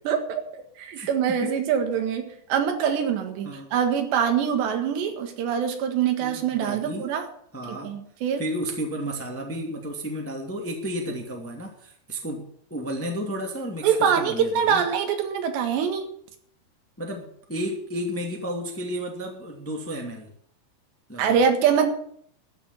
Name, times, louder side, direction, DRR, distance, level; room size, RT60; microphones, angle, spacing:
voice 1, 0.1-7.3 7.8-8.4 13.8-16.1 21.2-21.9, right 7 dB, 85° right, 6 dB, 4.0 m, -24 dB
voice 2, 0.9-1.5 3.4-3.7 6.2-7.1 7.5-7.9 8.4-14.8 17.0-20.3 21.1-21.4, equal, 5° left, 1 dB, 1.3 m, -32 dB
13.5 x 7.1 x 9.4 m, 0.64 s
omnidirectional pair, 4.8 m